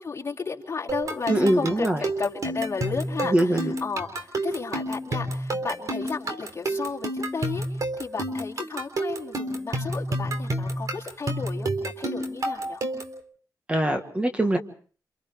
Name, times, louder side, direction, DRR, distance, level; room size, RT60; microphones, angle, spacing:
voice 1, 0.0-12.8, left 5 dB, 40° left, -2 dB, 3.4 m, -33 dB
sound 1, 0.9-13.2, right 1 dB, 50° right, 3.7 m, -30 dB
voice 2, 1.3-2.0 3.3-3.7 13.7-14.6, right 1 dB, 15° right, 6 dB, 1.5 m, -22 dB
29.5 x 26.5 x 3.4 m, 0.43 s
wide cardioid pair, 125°, 7 cm